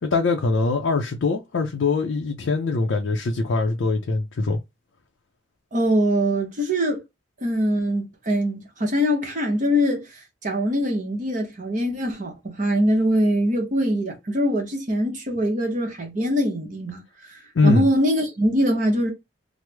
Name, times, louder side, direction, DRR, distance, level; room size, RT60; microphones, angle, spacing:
voice 1, 0.0-4.6 17.5-17.9, left 3 dB, 75° left, 0.5 m, -22 dB
voice 2, 5.7-7.0 7.4-19.1, equal, 40° right, 0.8 m, -23 dB
3.1 x 2.0 x 3.3 m
head